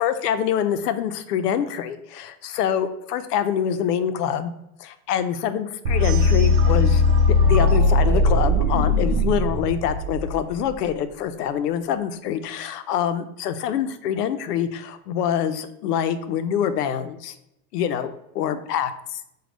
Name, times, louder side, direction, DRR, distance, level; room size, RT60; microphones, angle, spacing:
voice 1, 0.0-4.5 4.8-7.0 7.3-17.3 17.7-19.2, left 9 dB, 90° left, 10 dB, 0.6 m, -25 dB
sound 1, 5.8-10.7, left 3 dB, 80° right, 0.6 m, -19 dB
6.3 x 2.3 x 3.3 m, 0.82 s
supercardioid pair, 160°, 46 cm